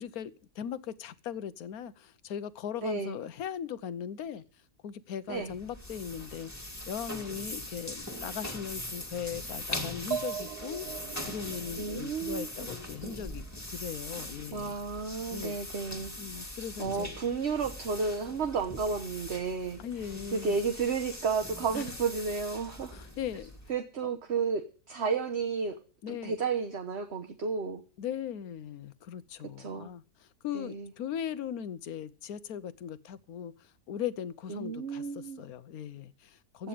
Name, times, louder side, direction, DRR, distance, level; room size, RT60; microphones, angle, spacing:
voice 1, 0.0-4.4 4.8-6.5 6.9-13.4 13.7-14.7 15.3-15.6 16.2-17.1 19.8-20.6 21.7-21.8 22.9-23.5 26.0-26.4 28.0-36.7, left 9 dB, 70° left, 1.3 m, -39 dB
voice 2, 2.8-3.2 5.3-5.5 11.8-12.7 14.5-16.4 16.8-19.8 20.3-23.0 23.7-25.8 26.1-27.8 29.6-29.9 30.5-30.9 34.5-35.4 36.6-36.7, right 5 dB, 45° right, 1.3 m, -32 dB
sound 1, 5.3-23.8, left 1 dB, 10° left, 2.0 m, -41 dB
sound 2, 10.1-13.8, right 9 dB, 80° right, 1.5 m, -40 dB
16.0 x 10.5 x 5.1 m
omnidirectional pair, 1.7 m